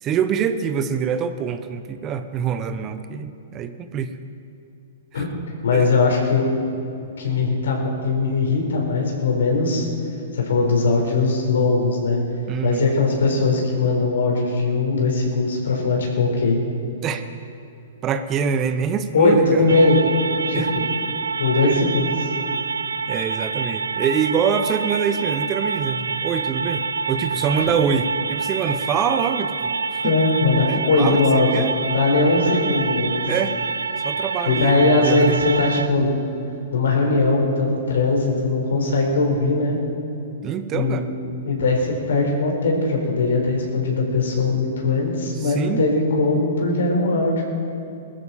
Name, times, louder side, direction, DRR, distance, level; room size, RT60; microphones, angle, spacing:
voice 1, 0.0-4.2 5.1-5.2 5.7-5.9 12.5-12.9 17.0-17.2 18.0-19.9 20.5-20.7 21.6-21.8 23.1-30.2 30.7-31.7 33.3-33.6 34.0-35.4 40.4-41.1 45.4-45.8, right 7 dB, 30° right, 9 dB, 0.9 m, -25 dB
voice 2, 5.6-6.5 7.2-9.9 10.3-12.2 12.6-16.6 19.1-20.0 20.5-20.8 21.4-22.1 27.6-27.7 30.0-33.2 34.4-36.1 36.7-39.8 40.7-41.1 41.4-47.4, left 3 dB, 70° left, 0 dB, 4.5 m, -20 dB
sound 1, 19.7-35.9, right 4 dB, 85° right, 0.6 m, -27 dB
21.5 x 13.0 x 4.3 m, 2.7 s
hypercardioid pair, 115°, 0 cm